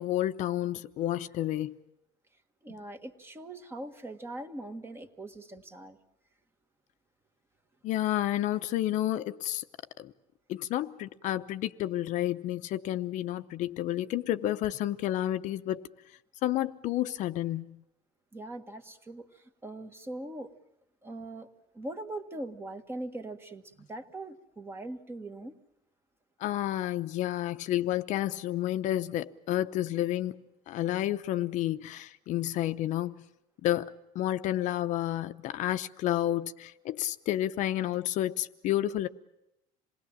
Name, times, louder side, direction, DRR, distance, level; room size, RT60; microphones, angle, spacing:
voice 1, 0.0-1.7 7.8-9.6 10.0-10.1 10.5-15.9 16.4-17.8 26.4-30.3 30.7-33.2 33.6-39.1, left 13 dB, 55° left, 0.8 m, -30 dB
voice 2, 2.6-6.0 18.3-20.5 21.0-21.5 21.7-25.5, right 1 dB, 15° right, 1.5 m, -41 dB
27.5 x 20.0 x 7.3 m
cardioid pair, 160°, 15 cm